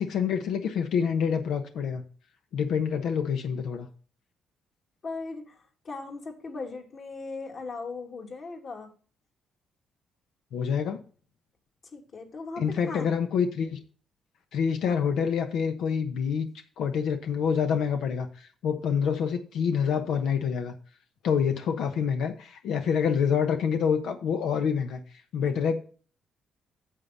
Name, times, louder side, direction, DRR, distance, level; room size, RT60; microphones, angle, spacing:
voice 1, 0.0-2.0 2.5-3.9 10.5-11.0 12.6-13.8 14.5-16.5 16.8-20.7 21.2-25.8, left 7 dB, 80° left, 6 dB, 1.0 m, -27 dB
voice 2, 5.0-5.6 5.8-8.9 11.9-13.1, left 3 dB, 50° left, 2 dB, 2.6 m, -38 dB
8.9 x 7.4 x 4.0 m, 0.40 s
cardioid pair, 90°, 0 cm